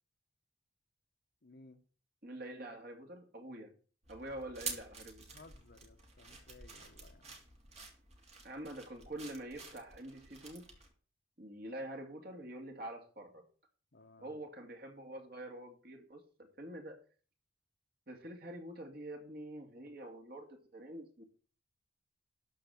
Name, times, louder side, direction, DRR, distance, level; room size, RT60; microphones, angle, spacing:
voice 1, 1.4-1.8 5.3-7.4 13.9-14.4, left 2 dB, 55° left, 1.2 m, -59 dB
voice 2, 2.2-3.7 4.1-5.3 8.4-10.7 11.4-13.4 14.2-16.2 16.6-17.0 18.1-21.2, right 1 dB, 50° right, 2.5 m, -46 dB
sound 1, 4.0-10.9, right 4 dB, 35° right, 2.7 m, -49 dB
12.5 x 4.9 x 7.7 m
head